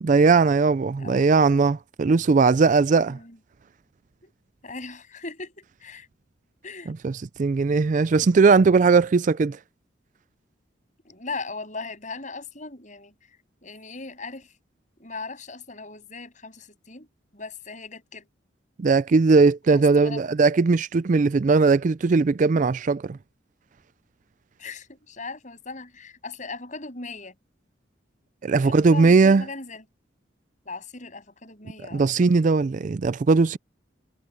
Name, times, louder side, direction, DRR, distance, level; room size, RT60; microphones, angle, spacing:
voice 1, 0.0-3.2 6.9-7.1 7.4-9.6 18.8-23.2 28.4-29.4 31.9-33.6, right 4 dB, 40° right, 0.4 m, -19 dB
voice 2, 3.0-3.4 4.2-4.3 4.6-6.1 6.6-6.9 11.0-13.1 13.6-14.5 15.0-17.1 17.3-18.3 19.7-20.2 24.6-27.3 28.6-29.8 30.7-32.1, left 3 dB, 40° left, 7.6 m, -38 dB
head